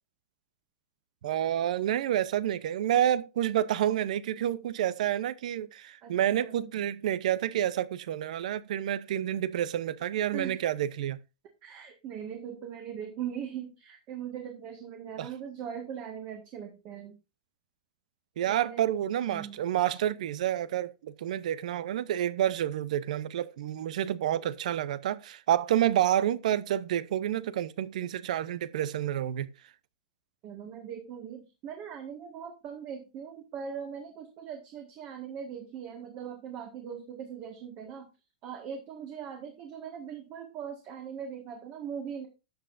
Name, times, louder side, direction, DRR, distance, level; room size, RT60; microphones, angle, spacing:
voice 1, 1.2-11.2 15.2-15.3 18.4-29.5, right 11 dB, 70° right, 0.7 m, -29 dB
voice 2, 6.0-6.7 10.3-10.6 11.6-17.2 18.4-18.9 19.3-19.6 30.4-38.1 38.4-42.3, right 8 dB, 35° right, 1.6 m, -40 dB
12.5 x 7.9 x 2.6 m
supercardioid pair, 145°, 4 cm